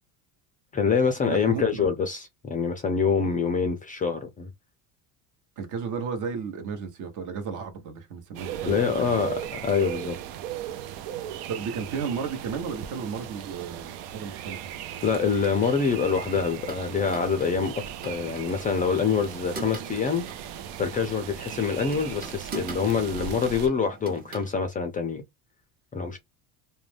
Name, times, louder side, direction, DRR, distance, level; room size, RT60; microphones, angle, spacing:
voice 1, 0.7-4.5 8.7-10.2 15.0-17.7 18.0-20.3 20.8-25.2 25.9-26.2, left 5 dB, 20° left, 0.4 m, -25 dB
voice 2, 1.3-1.9 5.6-9.3 11.5-14.6, right 6 dB, 50° right, 1.0 m, -33 dB
sound 1, 8.3-23.7, right 10 dB, 65° right, 0.6 m, -38 dB
sound 2, 16.1-24.5, right 3 dB, 20° right, 0.7 m, -43 dB
2.4 x 2.2 x 3.2 m
supercardioid pair, 115°, 40 cm